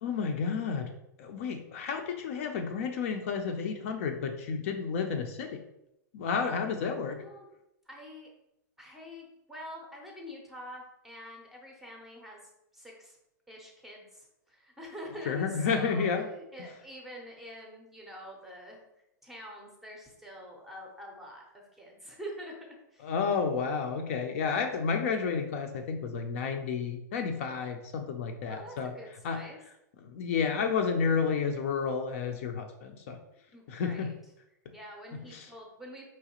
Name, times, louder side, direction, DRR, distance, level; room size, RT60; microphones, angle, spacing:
voice 1, 0.0-0.9 1.2-5.6 6.1-7.2 15.3-16.3 23.0-28.9 29.2-29.4 30.0-33.2 33.7-34.1 35.3-35.5, left 5 dB, 45° left, 5 dB, 0.5 m, -31 dB
voice 2, 7.9-8.3 8.8-12.4 12.7-13.2 13.5-16.1 16.3-18.8 19.2-22.6 22.9-23.1 28.5-29.6 33.5-34.1 34.7-36.0, equal, 5° right, -1 dB, 0.6 m, -46 dB
4.8 x 3.1 x 2.9 m, 0.83 s
supercardioid pair, 170°, 10 cm